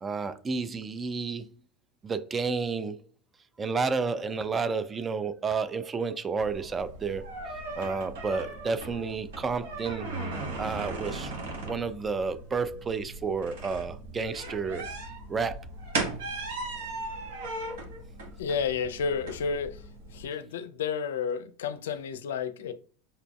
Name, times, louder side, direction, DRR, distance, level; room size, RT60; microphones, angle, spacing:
voice 1, 0.0-1.5 2.0-3.0 3.6-7.3 7.8-10.1 10.6-11.3 11.6-14.9 15.3-15.7, right 4 dB, 25° right, 0.4 m, -31 dB
sound 1, 6.4-20.2, right 2 dB, 75° right, 1.1 m, -38 dB
voice 2, 18.4-19.8 20.1-22.7, left 6 dB, 80° left, 0.4 m, -31 dB
5.3 x 2.5 x 2.3 m
hypercardioid pair, 95°, 0 cm